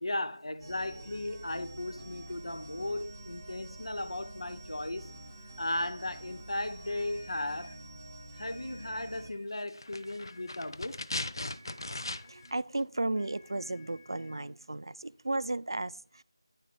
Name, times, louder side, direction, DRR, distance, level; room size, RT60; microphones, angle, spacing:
voice 1, 0.0-5.1 5.6-7.7 8.4-11.1, left 1 dB, 80° left, 0.9 m, -36 dB
sound 1, 0.6-9.3, right 1 dB, 10° right, 0.8 m, -48 dB
sound 2, 6.8-7.9 8.3-9.5 9.8-10.8 11.4-12.6 13.1-14.5, left 3 dB, 35° left, 2.4 m, -58 dB
sound 3, 9.7-12.5 12.8-12.9, left 2 dB, 55° left, 0.5 m, -38 dB
voice 2, 11.6-16.2, right 2 dB, 60° right, 0.4 m, -35 dB
9.6 x 6.8 x 4.5 m
figure-of-eight pair, 175°, 3 cm